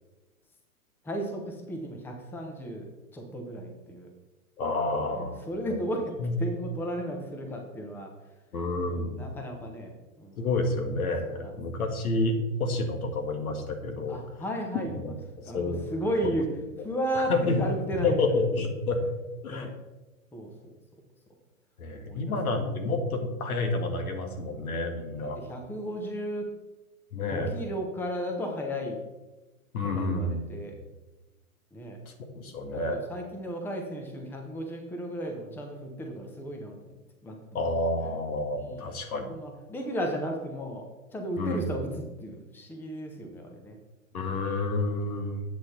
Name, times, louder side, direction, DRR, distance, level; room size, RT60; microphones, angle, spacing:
voice 1, 1.0-4.1 5.1-8.1 8.8-10.4 11.3-11.5 14.1-15.1 15.4-16.5 16.8-18.2 19.5-19.7 20.3-20.5 21.9-22.3 25.1-26.5 27.2-29.0 29.8-30.7 31.7-32.0 32.6-37.0 37.2-37.4 38.0-38.2 38.5-38.8 39.3-40.9 41.1-43.8 44.2-44.5, equal, 5° left, 2 dB, 0.9 m, -34 dB
voice 2, 4.6-5.4 5.7-5.8 6.2-6.3 8.5-9.3 10.4-14.2 14.9-15.1 15.5-15.8 17.1-17.7 18.0-19.0 19.4-19.7 21.8-25.4 27.1-27.6 29.7-30.4 32.3-33.1 37.5-39.3 41.4-41.8 44.1-45.4, left 2 dB, 75° left, 4 dB, 1.8 m, -29 dB
8.4 x 6.2 x 4.3 m, 1.1 s
hypercardioid pair, 130°, 43 cm